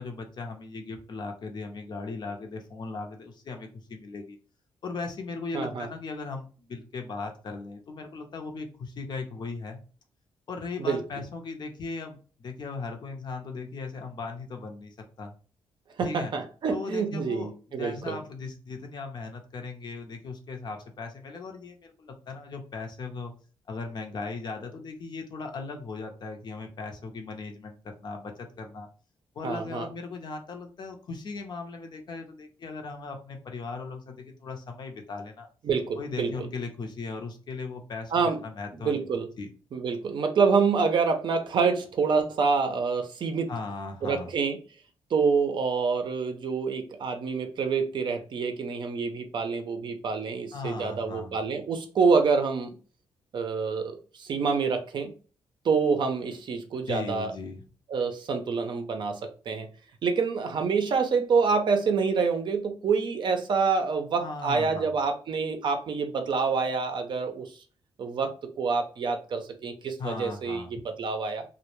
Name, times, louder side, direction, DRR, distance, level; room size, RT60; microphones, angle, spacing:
voice 1, 0.0-4.4 4.8-9.8 10.5-15.3 16.0-16.3 16.7-23.3 23.7-28.9 29.3-35.5 36.0-39.5 43.5-44.3 50.5-51.4 56.9-57.6 64.2-64.9 70.0-70.7, left 4 dB, 50° left, 4 dB, 0.6 m, -38 dB
voice 2, 5.5-5.9 10.8-11.0 16.0-18.2 29.4-29.9 35.6-36.3 38.1-38.4 38.8-39.3 39.7-43.5 44.0-44.6 45.1-52.7 53.3-55.1 55.6-57.3 57.9-59.2 59.5-59.7 60.0-67.5 68.0-71.4, right 5 dB, 55° right, 6 dB, 0.5 m, -27 dB
2.1 x 2.0 x 3.0 m, 0.38 s
cardioid pair, 85°, 9 cm